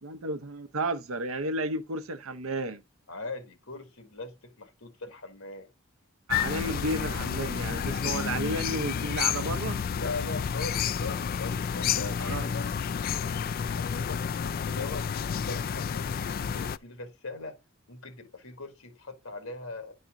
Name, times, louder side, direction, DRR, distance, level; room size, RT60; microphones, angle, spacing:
voice 1, 0.0-2.8 6.3-9.8 12.2-12.5, right 2 dB, 85° right, 0.8 m, -32 dB
voice 2, 3.1-5.7 9.9-12.8 13.1-15.1 15.4-17.6 17.9-20.0, left 3 dB, 85° left, 1.8 m, -41 dB
sound 1, 6.3-16.8, left 7 dB, 45° left, 0.3 m, -30 dB
10.5 x 4.2 x 3.7 m
head